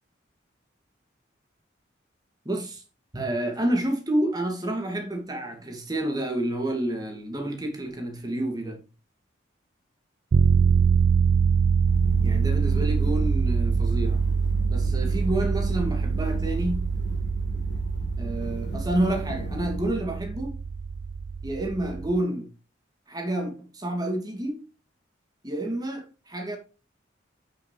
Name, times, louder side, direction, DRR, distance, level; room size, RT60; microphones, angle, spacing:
voice 1, 2.4-2.8 3.1-8.8 12.2-14.2 14.7-16.9 18.2-20.6 21.4-22.5 23.1-24.6 25.4-26.6, right 1 dB, 20° right, 2.2 m, -29 dB
sound 1, 10.3-22.2, right 5 dB, 75° right, 0.4 m, -24 dB
sound 2, 11.8-19.9, equal, 65° left, 1.4 m, -36 dB
8.5 x 7.1 x 3.2 m
head